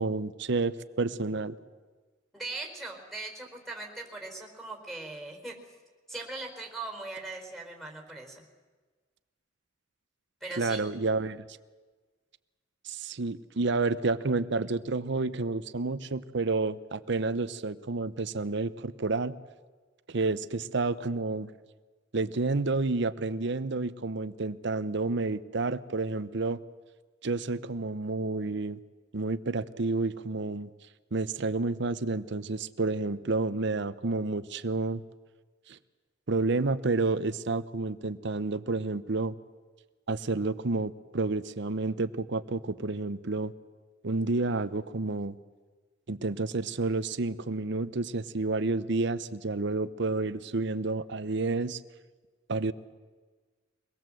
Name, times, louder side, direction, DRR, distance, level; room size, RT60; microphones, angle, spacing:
voice 1, 0.0-1.6 10.6-11.5 12.8-19.4 20.1-21.5 22.1-26.6 27.2-28.8 29.1-30.7 31.1-35.0 35.7-35.8 36.3-39.3 40.1-43.5 44.0-45.4 46.1-51.8 52.5-52.7, right 3 dB, 65° right, 14 dB, 0.8 m, -30 dB
voice 2, 2.3-5.6 6.1-8.4 10.4-10.9, right 2 dB, ahead, 1 dB, 4.4 m, -40 dB
24.0 x 19.0 x 7.7 m, 1.4 s
head